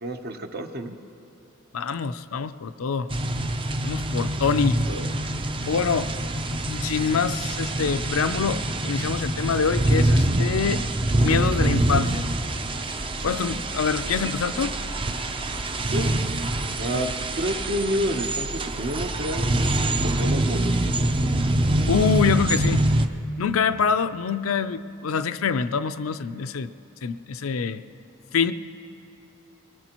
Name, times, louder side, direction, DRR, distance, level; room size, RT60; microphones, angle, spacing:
voice 1, 0.0-1.0 4.9-5.1 15.9-16.1 16.8-17.1 17.4-19.5 20.0-20.8, equal, 50° right, 6 dB, 0.8 m, -29 dB
voice 2, 1.7-3.1 3.8-4.8 5.7-6.1 6.7-10.8 11.2-12.3 13.2-14.7 16.9-17.1 21.9-22.8 23.4-26.7 27.0-27.8 28.3-28.5, left 6 dB, 75° left, 11 dB, 0.5 m, -25 dB
sound 1, 3.1-23.1, right 1 dB, 25° right, 0.5 m, -25 dB
23.5 x 18.5 x 3.0 m, 3.0 s
head